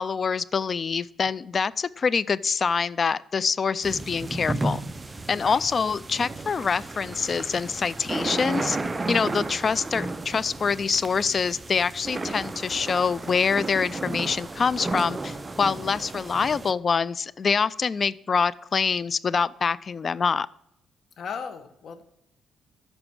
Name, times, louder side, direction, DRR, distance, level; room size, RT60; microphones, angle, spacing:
voice 1, 0.0-4.8 5.3-8.8 9.1-20.5, left 5 dB, 40° left, 21 dB, 0.4 m, -25 dB
sound 1, 3.8-16.7, right 2 dB, 20° right, 0.6 m, -33 dB
voice 2, 21.2-22.0, left 6 dB, 60° left, 10 dB, 1.2 m, -36 dB
8.9 x 6.0 x 6.0 m, 0.81 s
cardioid pair, 90°, 0 cm